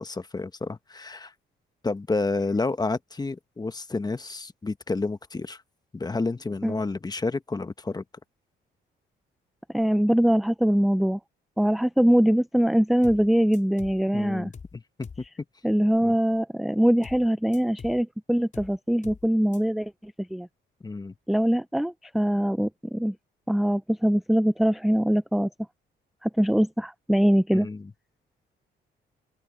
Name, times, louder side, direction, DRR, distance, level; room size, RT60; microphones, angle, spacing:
voice 1, 0.0-1.3 1.8-5.6 5.9-8.0 14.1-15.1 16.0-16.1 20.8-21.1 27.5-27.9, left 3 dB, 20° left, 1.1 m, -30 dB
voice 2, 9.7-11.2 11.6-14.5 15.6-20.5 21.3-23.1 23.5-25.5 26.2-27.7, equal, ahead, 0.6 m, -23 dB
sound 1, 13.0-13.3 13.5-14.0 14.5-14.8 15.0-15.3 17.0-17.3 17.5-18.0 18.5-18.8 19.0-19.3 19.5-19.6, left 5 dB, 40° left, 5.2 m, -43 dB
open air
cardioid pair, 90°, 20 cm